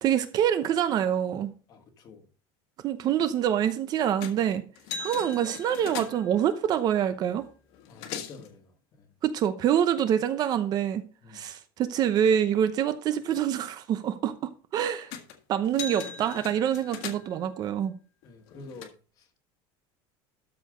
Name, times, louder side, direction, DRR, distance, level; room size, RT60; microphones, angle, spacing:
voice 1, 0.0-1.5 2.8-4.6 5.0-7.4 9.2-11.0 11.3-15.1 15.5-17.9, right 9 dB, 35° right, 0.8 m, -26 dB
voice 2, 1.7-2.3 7.9-8.7 9.0-9.1 11.2-11.4 18.2-19.4, left 3 dB, 30° left, 1.6 m, -48 dB
sound 1, 4.2-4.5 4.8-6.4 7.4-7.5 7.7-8.5 15.1-15.4 15.6-17.5 18.2-18.9, left 6 dB, 55° left, 1.7 m, -39 dB
13.0 x 4.5 x 5.1 m
cardioid pair, 165°, 12 cm